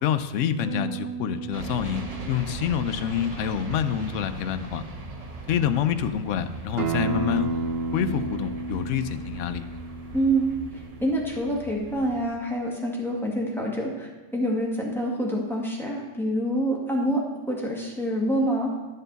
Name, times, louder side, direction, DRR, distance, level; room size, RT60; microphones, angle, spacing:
voice 1, 0.0-4.8 5.5-7.5 7.9-9.6, left 9 dB, 75° left, 10 dB, 0.9 m, -27 dB
Bass guitar, 0.6-6.9, right 9 dB, 80° right, 1.3 m, -41 dB
sound 1, 1.5-12.3, right 2 dB, 35° right, 0.9 m, -39 dB
Acoustic guitar, 6.8-12.0, right 4 dB, 55° right, 0.9 m, -32 dB
voice 2, 10.1-10.5 11.0-18.7, right 1 dB, ahead, -3 dB, 1.7 m, -26 dB
11.0 x 6.7 x 4.0 m, 1.2 s
omnidirectional pair, 1.3 m